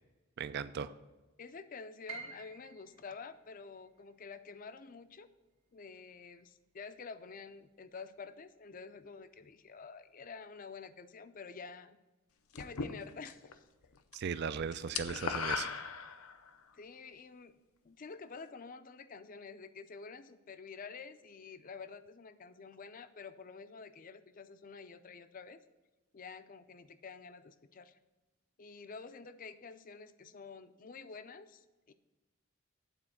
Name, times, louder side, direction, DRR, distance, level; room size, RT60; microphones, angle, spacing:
voice 1, 0.4-0.9 14.1-15.8, right 6 dB, 50° right, 14 dB, 0.4 m, -37 dB
voice 2, 1.4-5.3 5.7-12.0 12.5-13.7 16.7-17.5 17.8-25.6 26.1-28.0 28.6-31.9, left 5 dB, 40° left, 11 dB, 0.5 m, -49 dB
Piano, 2.1-8.0 8.3-9.5 9.9-10.0 10.7-11.0, right 6 dB, 75° right, 1.9 m, -54 dB
sound 1, 12.5-13.5 13.8-14.2 14.4-16.5, left 5 dB, 85° left, 0.7 m, -38 dB
9.1 x 4.2 x 7.2 m, 1.1 s
head